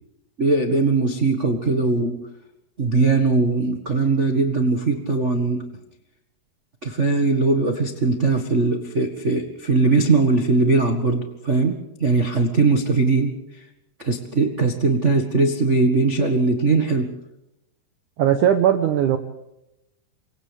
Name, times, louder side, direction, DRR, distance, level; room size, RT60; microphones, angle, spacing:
voice 1, 0.4-2.2 2.8-5.6 6.8-13.4 14.0-17.1, right 3 dB, 45° right, 3 dB, 0.9 m, -20 dB
voice 2, 18.2-19.2, right 10 dB, 65° right, 6 dB, 2.2 m, -18 dB
29.5 x 25.5 x 3.6 m, 0.87 s
omnidirectional pair, 4.5 m